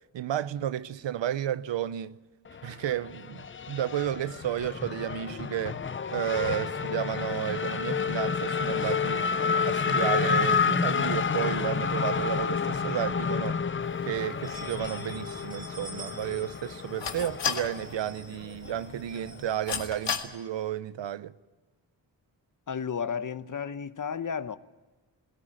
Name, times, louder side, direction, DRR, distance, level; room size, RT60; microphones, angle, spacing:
voice 1, 0.1-2.2 2.6-5.8 6.1-9.3 9.7-13.6 14.1-21.3, right 11 dB, 80° right, 0.8 m, -32 dB
Race car auto racing / Accelerating revving vroom, 2.5-19.4, left 6 dB, 30° left, 0.6 m, -30 dB
sound 1, 13.6-13.7 14.2-20.4, right 3 dB, 20° right, 2.4 m, -50 dB
sound 2, 13.8-20.2, left 7 dB, 70° left, 2.1 m, -38 dB
voice 2, 22.7-24.6, left 6 dB, 45° left, 1.0 m, -33 dB
19.0 x 17.5 x 9.0 m
cardioid pair, 85°, 44 cm